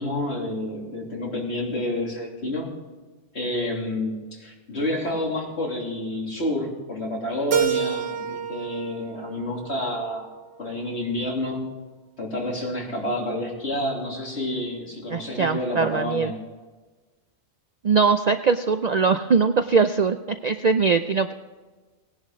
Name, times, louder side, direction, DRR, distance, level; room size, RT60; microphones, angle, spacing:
voice 1, 0.0-2.7 3.3-10.3 10.6-11.6 12.2-16.4, left 1 dB, 65° left, -2 dB, 3.2 m, -29 dB
Keyboard (musical), 7.5-10.4, right 7 dB, 85° right, 1.2 m, -29 dB
voice 2, 15.1-16.3 17.8-21.3, right 5 dB, 55° right, 9 dB, 0.4 m, -21 dB
18.5 x 11.0 x 3.6 m, 1.3 s
omnidirectional pair, 1.2 m